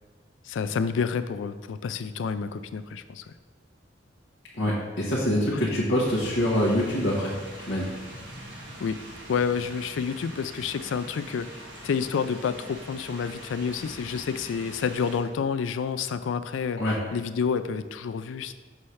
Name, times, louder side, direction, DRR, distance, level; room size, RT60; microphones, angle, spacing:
voice 1, 0.5-3.3 5.5-5.6 8.8-9.0 9.3-16.8 17.1-18.5, left 6 dB, 90° left, 12 dB, 0.4 m, -29 dB
voice 2, 4.5-7.3 7.7-7.9 16.8-17.0, left 1 dB, 65° left, -6 dB, 1.0 m, -25 dB
sound 1, 6.0-15.2, right 1 dB, 75° right, 1.3 m, -43 dB
6.2 x 3.2 x 5.5 m, 1.3 s
head